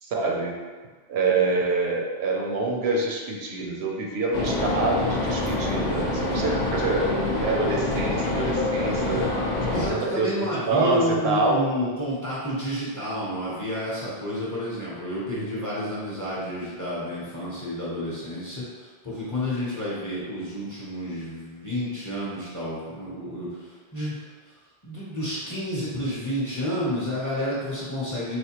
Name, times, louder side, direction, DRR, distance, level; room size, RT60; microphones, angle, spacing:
voice 1, 0.0-0.5 1.1-7.1 7.4-9.3 9.7-10.3 10.7-11.6, right 3 dB, 80° right, -1 dB, 0.9 m, -26 dB
sound 1, 4.3-9.9, left 2 dB, 50° left, 0.7 m, -26 dB
voice 2, 9.7-24.1 24.4-24.5 24.8-28.4, equal, 20° left, -8 dB, 0.7 m, -30 dB
4.2 x 2.2 x 2.9 m, 1.4 s
omnidirectional pair, 1.1 m